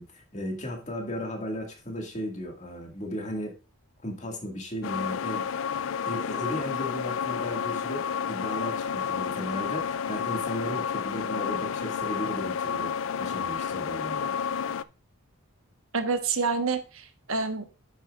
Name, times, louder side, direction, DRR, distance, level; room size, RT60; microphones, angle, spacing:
voice 1, 0.0-3.5 4.0-5.5 6.0-14.4, equal, 35° left, 2 dB, 1.8 m, -35 dB
sound 1, 4.8-14.8, left 7 dB, 65° left, 0.4 m, -30 dB
voice 2, 15.9-17.8, right 4 dB, 75° right, 8 dB, 1.2 m, -28 dB
9.1 x 8.1 x 2.4 m, 0.32 s
head